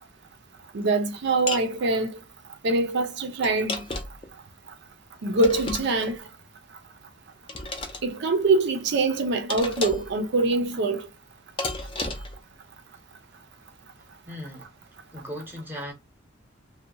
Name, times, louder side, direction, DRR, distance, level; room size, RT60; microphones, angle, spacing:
voice 1, 0.7-2.2 2.6-3.8 5.2-6.2 8.0-11.1, right 3 dB, 60° right, 0.5 m, -24 dB
sound 1, 1.5-1.7 3.4-4.3 5.4-6.2 7.5-8.0 9.5-10.1 11.6-12.4, left 2 dB, 25° left, 0.5 m, -32 dB
voice 2, 14.3-14.7 15.1-15.9, equal, 10° right, 0.8 m, -37 dB
2.7 x 2.2 x 2.5 m
head